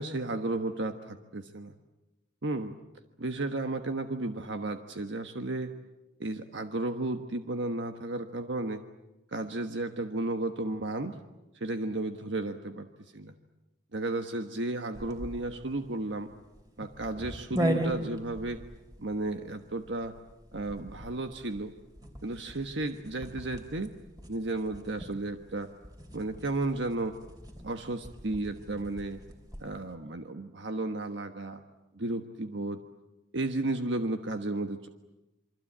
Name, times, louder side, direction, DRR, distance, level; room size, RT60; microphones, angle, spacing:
voice 1, 0.0-1.7 2.4-2.7 3.2-5.7 6.2-8.8 9.3-11.2 11.5-12.9 13.1-13.3 13.9-16.3 16.8-18.6 19.0-20.1 20.5-21.7 22.2-23.9 24.3-25.7 26.1-27.2 27.6-29.2 29.6-31.6 31.9-32.8 33.3-34.9, right 2 dB, 75° right, 6 dB, 1.3 m, -33 dB
sound 1, 14.9-29.8, right 1 dB, 20° right, 3.3 m, -39 dB
28.0 x 24.5 x 8.7 m, 1.0 s
head